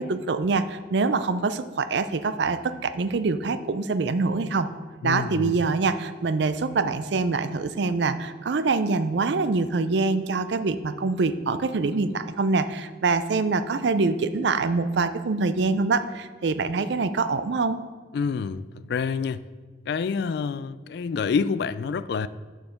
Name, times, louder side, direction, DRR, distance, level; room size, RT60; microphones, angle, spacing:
voice 1, 0.0-4.7 5.0-17.8, right 4 dB, 65° right, 0.5 m, -25 dB
voice 2, 5.0-5.6 18.1-18.6 18.9-19.4 19.9-22.3, left 5 dB, 60° left, 0.3 m, -27 dB
7.4 x 5.3 x 6.4 m
head